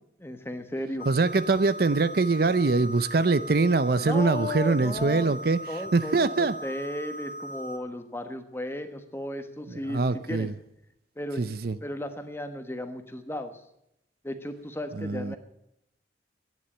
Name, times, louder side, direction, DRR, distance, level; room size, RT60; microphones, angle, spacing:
voice 1, 0.2-1.1 4.0-5.3 5.7-10.0 10.3-10.5 11.2-11.4 11.8-13.5 14.2-15.4, left 1 dB, 15° left, 8 dB, 1.2 m, -35 dB
sound 1, 1.0-7.8, right 1 dB, 50° left, 1.4 m, -39 dB
voice 2, 1.1-5.6 5.9-6.6 9.7-10.5 11.4-11.8 15.0-15.4, right 3 dB, 55° right, 14 dB, 0.5 m, -23 dB
12.0 x 9.7 x 9.9 m, 0.81 s
head